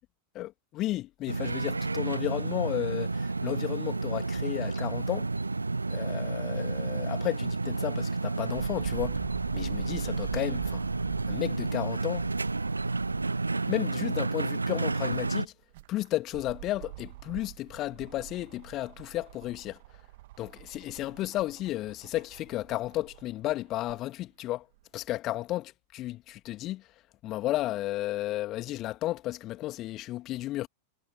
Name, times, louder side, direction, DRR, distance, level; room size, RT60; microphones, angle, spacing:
voice 1, 0.3-5.3 5.9-9.2 9.5-10.8 11.3-12.3 13.5-15.5 15.9-19.8 20.4-24.7 24.9-26.9 27.2-30.7, left 15 dB, 35° left, 2.3 m, -33 dB
sound 1, 1.3-15.5, right 3 dB, 80° right, 0.4 m, -31 dB
sound 2, 8.5-13.6 14.0-14.1 15.5-24.0 24.8-24.9, right 18 dB, 50° right, 1.7 m, -44 dB
figure-of-eight pair, 90°, 0 cm